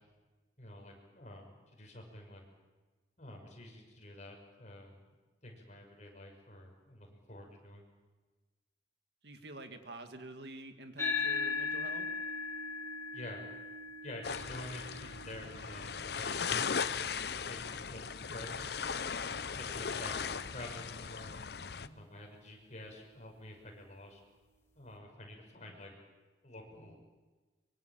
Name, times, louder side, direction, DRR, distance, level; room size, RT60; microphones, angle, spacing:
voice 1, 0.6-2.4 3.2-5.0 5.4-7.8 13.1-13.4 14.0-16.9 17.4-18.9 19.5-21.3 21.8-24.2 24.8-25.9 26.4-27.0, left 1 dB, 40° left, 1 dB, 6.0 m, -49 dB
voice 2, 9.2-12.1, right 2 dB, 70° right, 7 dB, 2.1 m, -47 dB
sound 1, 11.0-19.7, left 5 dB, 15° left, 3.5 m, -40 dB
sound 2, 14.2-21.9, left 6 dB, 65° left, 0.8 m, -38 dB
24.0 x 23.5 x 7.5 m, 1.3 s
head